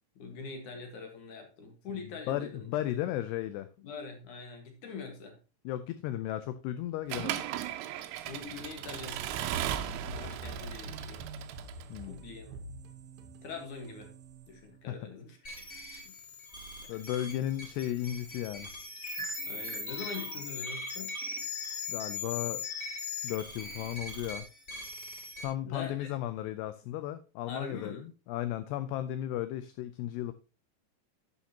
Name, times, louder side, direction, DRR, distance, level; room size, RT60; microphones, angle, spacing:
voice 1, 0.2-2.7 3.8-5.4 8.3-9.3 10.1-11.3 12.0-12.7 13.4-14.1 14.5-16.1 16.8-16.9 19.2-21.2 25.7-26.1 27.5-28.1, left 4 dB, 60° left, 4 dB, 2.2 m, -43 dB
voice 2, 2.3-3.7 5.7-7.4 11.9-12.3 14.9-15.0 16.9-18.7 21.9-22.6 23.2-24.5 25.4-30.3, left 13 dB, 85° left, 12 dB, 2.4 m, -35 dB
Accelerating revving vroom / Mechanisms, 7.1-12.0, right 11 dB, 80° right, 3.1 m, -36 dB
sound 1, 9.5-15.2, right 2 dB, 60° right, 2.8 m, -46 dB
sound 2, 15.4-25.4, left 3 dB, 20° left, 1.9 m, -39 dB
11.5 x 8.3 x 2.8 m, 0.32 s
omnidirectional pair, 5.4 m